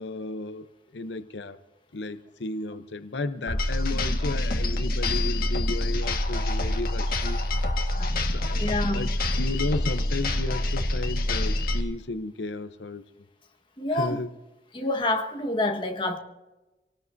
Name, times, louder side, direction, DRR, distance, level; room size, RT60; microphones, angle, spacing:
voice 1, 0.0-1.6 1.9-7.4 8.2-13.1 13.9-14.3, left 2 dB, 90° left, 0.8 m, -34 dB
sound 1, 3.5-11.8, left 1 dB, 55° left, 1.6 m, -26 dB
voice 2, 8.6-9.1 13.8-14.2 14.7-16.2, left 2 dB, 30° left, 1.5 m, -27 dB
27.0 x 18.5 x 2.7 m
head